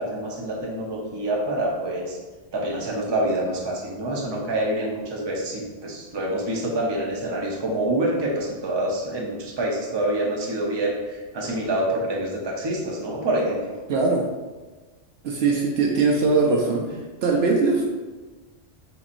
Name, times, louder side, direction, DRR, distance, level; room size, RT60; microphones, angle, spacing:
voice 1, 0.0-2.2 2.5-10.9 11.3-13.6, right 1 dB, 25° right, -2 dB, 0.6 m, -26 dB
voice 2, 13.9-14.3 15.2-17.9, right 3 dB, 65° right, 0 dB, 0.8 m, -21 dB
4.4 x 4.1 x 2.5 m, 1.3 s
omnidirectional pair, 1.2 m